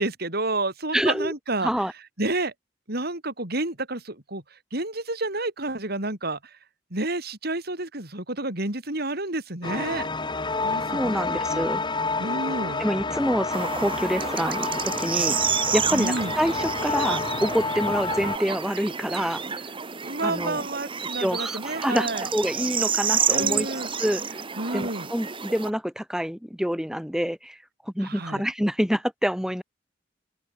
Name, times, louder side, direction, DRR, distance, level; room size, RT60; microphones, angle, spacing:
voice 1, 0.0-1.7 2.2-2.5 2.9-6.6 6.9-10.1 10.6-11.2 11.5-11.6 12.2-12.8 15.9-16.3 20.0-22.3 23.3-23.9 24.6-25.1 28.0-28.4, right 2 dB, 55° right, 6.0 m, -30 dB
voice 2, 0.9-1.3 1.6-1.9 10.9-11.8 12.8-15.4 15.7-19.4 20.2-20.6 21.2-23.7 24.0-24.2 24.7-27.6 27.9-29.6, equal, 5° right, 2.5 m, -27 dB
sound 1, 9.6-18.4, left 3 dB, 25° left, 3.3 m, -29 dB
sound 2, 13.5-25.7, right 6 dB, 30° right, 1.4 m, -29 dB
open air
head